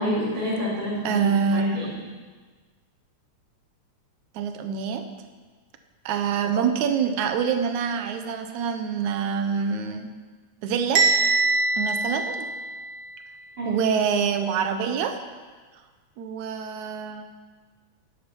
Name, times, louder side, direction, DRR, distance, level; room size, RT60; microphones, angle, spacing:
voice 1, 0.0-1.9 13.6-13.8, equal, 30° right, -10 dB, 5.0 m, -28 dB
voice 2, 1.0-1.9 4.4-5.0 6.1-10.1 10.6-11.1 11.8-12.5 13.7-15.2 16.2-17.3, right 6 dB, 80° right, 7 dB, 2.4 m, -26 dB
Bell, 11.0-13.0, right 3 dB, 60° right, 2.9 m, -23 dB
18.0 x 12.5 x 5.4 m, 1.4 s
omnidirectional pair, 3.4 m